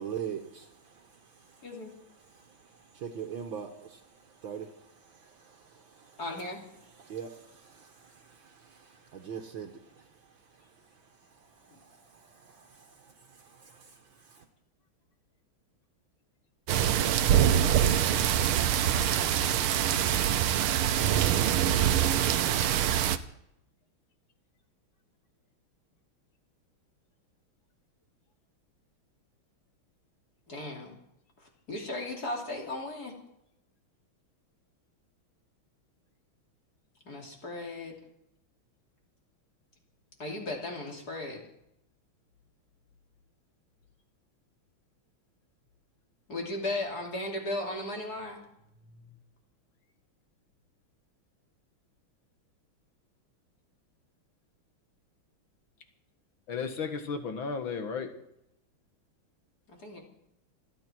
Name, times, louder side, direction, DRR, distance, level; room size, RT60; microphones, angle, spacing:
voice 1, 0.0-1.7 2.2-6.2 6.8-14.4, right 8 dB, 70° right, 3 dB, 2.0 m, -44 dB
voice 2, 1.6-1.9 6.2-6.6 19.7-21.0 30.5-30.9 31.4-33.1 37.0-37.9 40.2-41.4 46.3-48.4 59.8-60.0, left 2 dB, 45° left, 0 dB, 3.5 m, -36 dB
sound 1, 16.7-23.2, right 10 dB, 85° right, 1.7 m, -24 dB
voice 3, 48.9-49.2 56.5-58.1, left 5 dB, 70° left, 6 dB, 2.4 m, -34 dB
27.5 x 10.0 x 4.6 m, 0.82 s
omnidirectional pair, 2.3 m